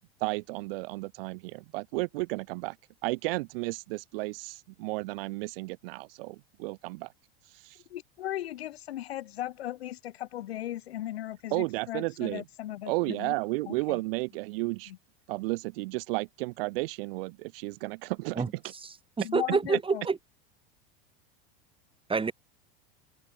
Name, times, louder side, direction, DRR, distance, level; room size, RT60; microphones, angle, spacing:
voice 1, 0.2-2.8 3.0-7.1 7.5-7.8 11.5-12.4 12.8-14.9 15.3-18.4, right 24 dB, 70° right, 2.7 m, -33 dB
voice 2, 7.9-13.3 13.7-14.0 14.9-15.0 19.2-20.0, left 13 dB, 85° left, 2.9 m, -37 dB
voice 3, 18.8-20.2 22.1-22.3, right 4 dB, 15° right, 4.8 m, -28 dB
hypercardioid pair, 105°, 30 cm